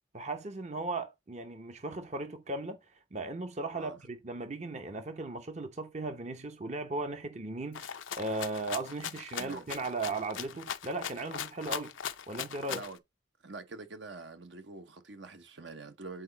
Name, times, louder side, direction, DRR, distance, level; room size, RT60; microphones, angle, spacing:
voice 1, 0.1-2.8 3.1-11.9 12.3-12.8, right 2 dB, 35° right, 0.7 m, -37 dB
Rattle (instrument), 7.7-13.0, left 8 dB, 85° left, 0.6 m, -39 dB
voice 2, 9.3-9.7 12.7-13.0 13.4-16.2, right 3 dB, 65° right, 1.0 m, -45 dB
9.1 x 4.0 x 3.9 m
head